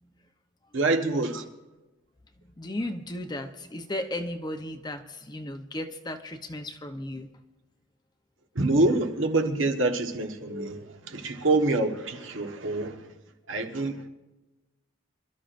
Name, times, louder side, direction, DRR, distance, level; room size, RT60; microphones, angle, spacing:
voice 1, 0.7-1.4 8.5-13.1 13.5-14.1, right 2 dB, 70° right, 1.3 m, -26 dB
voice 2, 2.4-7.3, left 1 dB, 20° left, 0.8 m, -35 dB
27.0 x 13.0 x 2.6 m
head